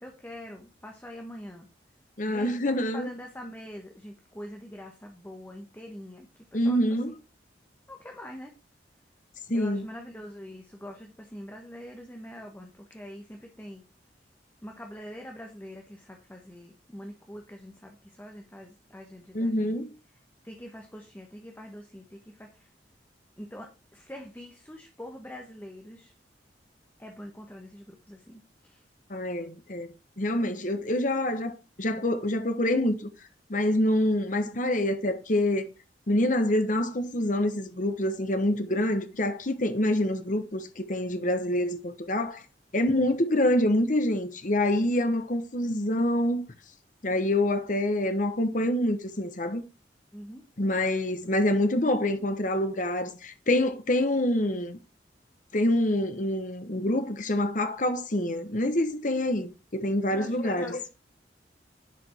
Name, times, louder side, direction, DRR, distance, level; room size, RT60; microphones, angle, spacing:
voice 1, 0.0-1.7 2.3-7.0 7.9-8.5 9.5-13.8 14.6-19.8 20.4-22.7 23.4-26.1 27.0-28.8 30.5-30.7 50.1-50.4 60.1-60.9, equal, 10° left, 1.2 m, -44 dB
voice 2, 2.2-3.1 6.5-7.1 9.5-9.8 19.3-19.9 29.1-31.5 31.8-33.1 33.5-35.7 36.1-42.4 42.7-46.4 47.0-49.6 50.6-54.8 55.5-60.8, left 1 dB, 45° left, 1.2 m, -26 dB
10.5 x 5.2 x 4.4 m
head